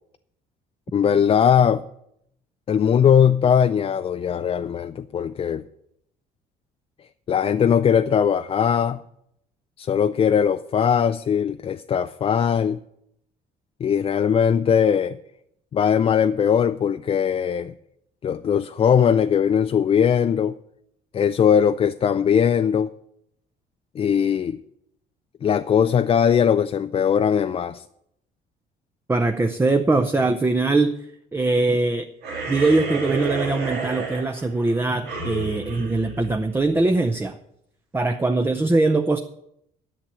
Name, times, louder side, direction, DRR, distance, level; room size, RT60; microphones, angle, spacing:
voice 1, 0.9-1.8 2.7-5.6 7.3-9.0 9.8-12.8 13.8-15.2 15.7-17.7 18.2-20.6 21.1-22.9 23.9-24.6 25.4-27.8, left 8 dB, 35° left, 10 dB, 0.4 m, -20 dB
voice 2, 29.1-31.0 31.3-32.1 32.5-37.4 37.9-39.2, right 3 dB, 15° right, 6 dB, 0.7 m, -21 dB
sound 1, 32.2-36.9, right 3 dB, 90° right, 2.9 m, -31 dB
10.0 x 6.9 x 8.8 m, 0.76 s
cardioid pair, 110°, 17 cm